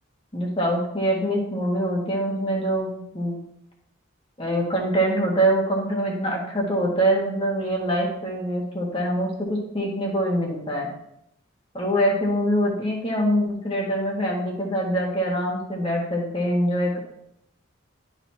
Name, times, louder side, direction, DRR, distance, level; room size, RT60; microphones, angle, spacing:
voice 1, 0.3-3.3 4.4-10.9 11.7-17.0, equal, 25° left, -2 dB, 1.6 m, -24 dB
11.0 x 4.0 x 2.9 m, 0.78 s
head